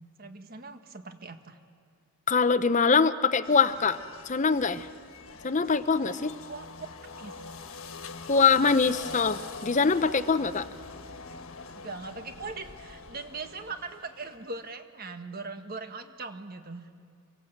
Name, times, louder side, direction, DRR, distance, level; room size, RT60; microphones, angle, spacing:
voice 1, 0.2-1.6 6.5-6.7 7.0-7.3 11.8-16.9, right 3 dB, 45° right, 7 dB, 1.7 m, -40 dB
voice 2, 2.3-4.0 4.3-4.9 5.4-6.3 8.3-10.7, left 5 dB, 35° left, 13 dB, 0.7 m, -23 dB
sound 1, 3.4-14.6, left 4 dB, 80° left, 1.4 m, -44 dB
26.5 x 23.5 x 8.0 m, 2.2 s
head